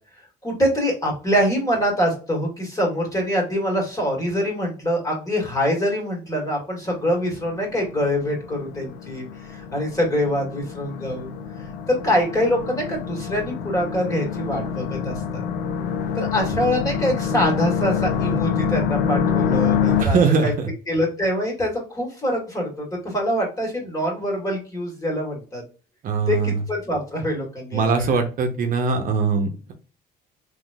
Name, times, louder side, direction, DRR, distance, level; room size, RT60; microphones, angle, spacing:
voice 1, 0.4-11.3 11.9-15.4 16.1-20.2 20.4-20.5 20.9-25.6 26.3-28.2, equal, 20° left, -1 dB, 1.7 m, -24 dB
sound 1, 6.9-20.0, left 7 dB, 80° left, 0.6 m, -26 dB
voice 2, 20.0-20.7 26.0-26.6 27.7-29.7, right 4 dB, 55° right, 4 dB, 0.7 m, -21 dB
3.6 x 3.1 x 2.2 m, 0.36 s
cardioid pair, 110°, 17 cm